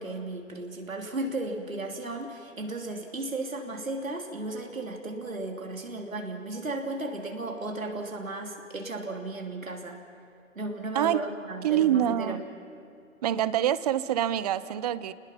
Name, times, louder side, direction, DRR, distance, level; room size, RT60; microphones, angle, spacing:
voice 1, 0.0-10.0 10.5-12.4, right 2 dB, 80° right, 2 dB, 3.1 m, -35 dB
voice 2, 11.6-12.4 13.2-15.1, right 11 dB, 30° right, 16 dB, 0.7 m, -25 dB
29.5 x 20.0 x 5.8 m, 2.7 s
figure-of-eight pair, 125°, 40 cm